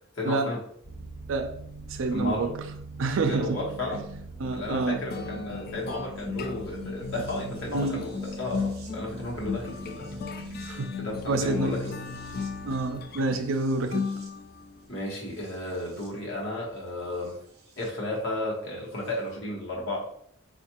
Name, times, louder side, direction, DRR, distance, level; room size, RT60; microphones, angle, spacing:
voice 1, 0.1-0.6 2.1-2.5 3.3-4.0 4.5-10.2 11.0-12.0 12.3-12.4 14.9-17.4 17.8-20.0, left 1 dB, 60° left, 1.1 m, -33 dB
sound 1, 0.8-17.9 19.0-19.1, right 1 dB, 50° right, 0.8 m, -43 dB
voice 2, 1.9-2.5 3.0-3.6 4.4-5.0 7.7-8.1 10.7-11.0 11.3-11.8 12.6-14.1, right 3 dB, 70° right, 0.4 m, -27 dB
sound 2, 5.1-14.8, left 5 dB, 45° left, 0.3 m, -36 dB
4.4 x 2.4 x 2.9 m
head